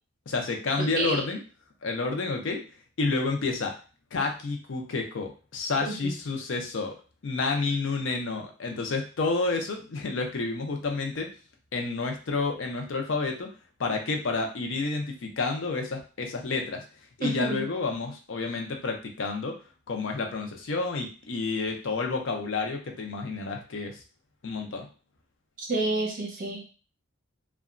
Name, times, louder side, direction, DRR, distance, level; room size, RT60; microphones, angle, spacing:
voice 1, 0.3-1.4 1.8-2.6 3.0-3.7 4.1-6.9 7.2-11.3 11.7-13.5 13.8-16.8 17.2-19.6 19.9-24.0 24.4-24.9, left 3 dB, 60° left, 3 dB, 0.5 m, -30 dB
voice 2, 0.8-1.2 5.8-6.1 17.2-17.7 25.6-26.6, right 2 dB, 40° right, -2 dB, 0.8 m, -29 dB
2.8 x 2.2 x 2.4 m, 0.35 s
head